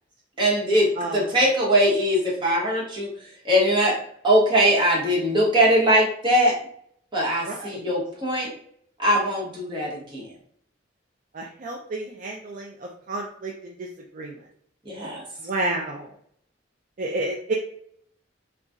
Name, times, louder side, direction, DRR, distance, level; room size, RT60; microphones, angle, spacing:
voice 1, 0.4-3.1 3.4-6.6 7.1-8.5 9.0-10.2 14.8-15.2, equal, 25° right, -5 dB, 1.1 m, -21 dB
voice 2, 1.0-1.3 7.5-7.8 11.3-13.9 14.1-14.5 15.4-16.1 17.0-17.5, right 2 dB, 45° right, 0 dB, 0.4 m, -31 dB
3.9 x 2.3 x 2.4 m, 0.65 s
head